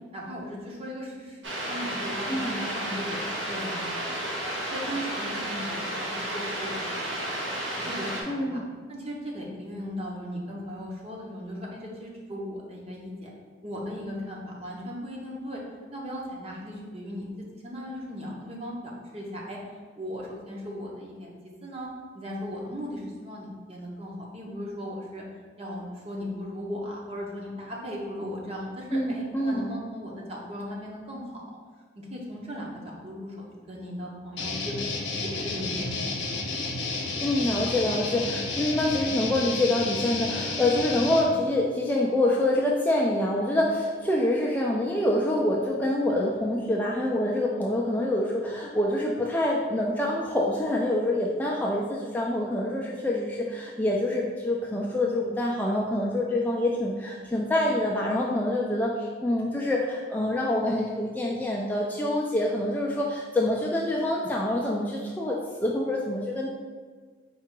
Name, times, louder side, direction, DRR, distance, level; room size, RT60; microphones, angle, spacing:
voice 1, 0.1-4.1 4.7-7.3 7.8-8.6 8.9-13.3 13.6-15.6 15.9-19.6 19.9-21.9 22.1-25.2 25.6-31.3 32.0-34.7 35.2-36.1, equal, 35° right, -3 dB, 0.9 m, -37 dB
sound 1, 1.4-8.2, right 1 dB, 85° right, 1.0 m, -32 dB
voice 2, 8.3-8.6 28.9-29.6 37.2-66.5, left 1 dB, 10° left, -3 dB, 0.3 m, -26 dB
sound 2, 34.4-41.2, left 3 dB, 75° left, 0.7 m, -31 dB
4.6 x 2.4 x 4.6 m, 1.5 s
head